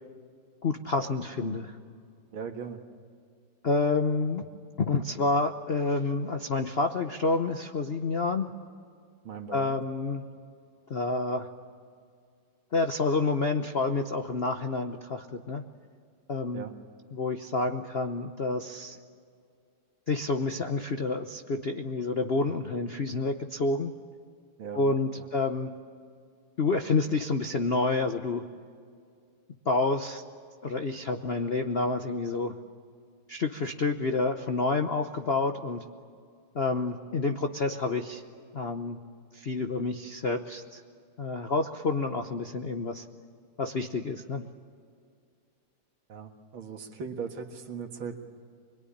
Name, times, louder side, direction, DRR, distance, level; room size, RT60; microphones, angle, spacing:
voice 1, 0.6-1.7 3.6-4.5 4.8-8.5 9.5-10.3 10.9-11.5 12.7-15.6 16.3-16.7 17.1-19.0 20.1-23.9 24.7-25.7 26.6-28.4 29.7-30.2 30.6-32.5 33.3-35.8 36.5-38.2 38.5-39.0 39.3-40.8 41.2-43.0 43.6-44.4, left 3 dB, 55° left, 7 dB, 0.7 m, -28 dB
voice 2, 2.3-2.8 9.2-9.8 16.5-16.7 24.6-24.8 25.2-25.3 46.1-48.2, right 6 dB, 70° right, 5 dB, 2.5 m, -39 dB
25.5 x 22.0 x 10.0 m, 2.2 s
omnidirectional pair, 2.4 m